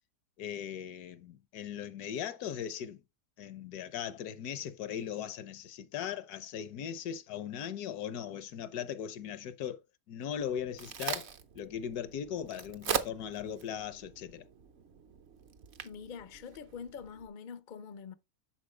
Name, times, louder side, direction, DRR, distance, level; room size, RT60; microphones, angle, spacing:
voice 1, 0.4-3.0 3.4-9.8 10.1-14.4, left 9 dB, 70° left, 1.2 m, -39 dB
Crack, 10.4-17.3, right 8 dB, 50° right, 0.9 m, -41 dB
voice 2, 15.8-18.1, left 6 dB, 50° left, 0.5 m, -45 dB
10.5 x 4.5 x 3.2 m
omnidirectional pair, 1.8 m